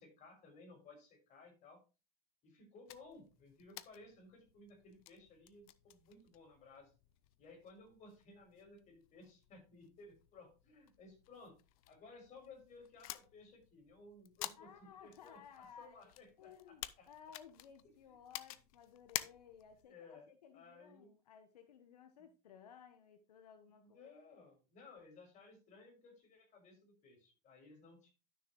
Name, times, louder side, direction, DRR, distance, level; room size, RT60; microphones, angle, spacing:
voice 1, 0.0-1.8 2.4-6.9 7.4-11.6 11.9-17.1 19.9-20.3 20.5-21.1 22.2-22.3 23.8-28.1, left 3 dB, 40° left, 4 dB, 5.5 m, -58 dB
sound 1, 2.9-19.9, left 16 dB, 65° left, 0.7 m, -52 dB
voice 2, 14.6-24.1, left 7 dB, 85° left, 8 dB, 1.1 m, -58 dB
12.0 x 6.6 x 3.1 m, 0.31 s
hypercardioid pair, 105°, 20 cm